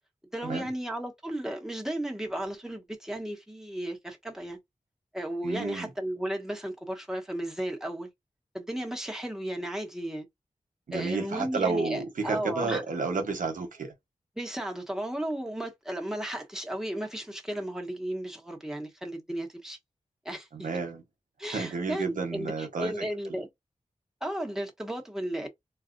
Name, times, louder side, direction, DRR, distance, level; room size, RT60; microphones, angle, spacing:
voice 1, 0.3-4.6 5.1-8.1 8.5-10.3 10.9-12.8 14.4-19.8 20.2-20.7 21.4-23.5 24.2-25.5, right 1 dB, 5° right, 1.1 m, -34 dB
voice 2, 5.4-5.9 10.9-13.9 20.5-21.0 21.5-23.4, right 4 dB, 85° right, 1.0 m, -31 dB
4.0 x 2.3 x 2.6 m
wide cardioid pair, 90°, 13 cm